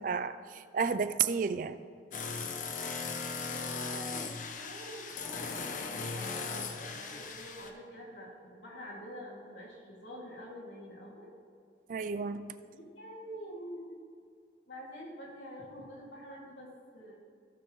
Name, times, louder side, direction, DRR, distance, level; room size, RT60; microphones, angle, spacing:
voice 1, 0.0-1.8 11.9-12.5, right 6 dB, 45° right, 0.3 m, -32 dB
sound 1, 2.1-7.7, left 4 dB, 45° left, 0.6 m, -38 dB
voice 2, 3.4-11.3 12.7-14.0 14.7-17.1, equal, 85° left, 2.5 m, -47 dB
15.5 x 6.7 x 3.1 m
head